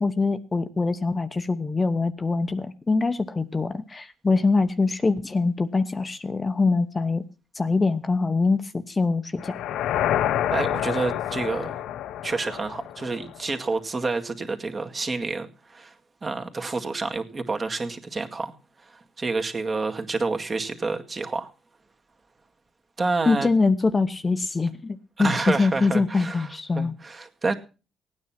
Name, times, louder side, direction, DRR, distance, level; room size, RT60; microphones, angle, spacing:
voice 1, 0.0-7.2 7.5-9.5 23.3-26.9, left 3 dB, 25° left, 11 dB, 1.0 m, -24 dB
sound 1, 9.4-13.5, left 11 dB, 80° left, 0.7 m, -28 dB
voice 2, 10.5-11.8 12.2-15.9 16.2-18.5 18.9-21.5 23.0-23.5 25.2-26.5 26.8-27.5, right 3 dB, 30° right, 5 dB, 2.0 m, -28 dB
16.5 x 9.5 x 5.9 m, 0.34 s
cardioid pair, 90°, 0 cm